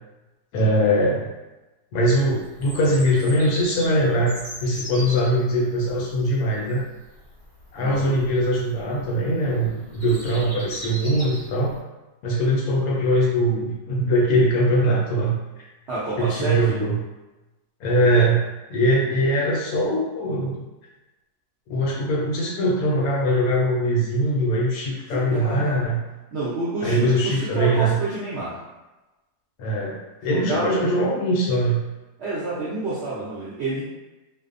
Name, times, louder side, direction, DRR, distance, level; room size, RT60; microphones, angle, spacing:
voice 1, 0.5-1.3 1.9-4.3 4.6-6.8 7.7-11.7 12.2-15.4 16.2-17.0 17.8-20.6 21.7-26.0 26.8-28.0 29.6-31.8, equal, 70° left, -3 dB, 1.0 m, -21 dB
Bird vocalization bird call bird song, 2.2-11.8, equal, 45° right, 0.9 m, -41 dB
voice 2, 7.8-8.1 15.9-16.8 25.1-25.8 26.3-28.6 30.3-30.9 32.2-33.8, right 2 dB, 70° right, -10 dB, 0.6 m, -28 dB
2.7 x 2.0 x 2.4 m, 1.1 s
omnidirectional pair, 1.8 m